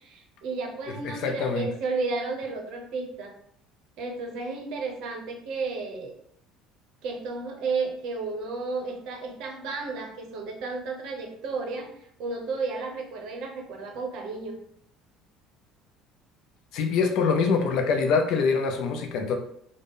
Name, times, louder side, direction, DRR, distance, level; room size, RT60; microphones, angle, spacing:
voice 1, 0.0-3.3 4.0-6.1 7.0-14.6, right 3 dB, 55° right, 3 dB, 0.7 m, -33 dB
voice 2, 1.0-1.7 16.7-19.4, left 5 dB, 50° left, 5 dB, 0.5 m, -24 dB
3.9 x 2.0 x 3.6 m, 0.68 s
cardioid pair, 175°, 0 cm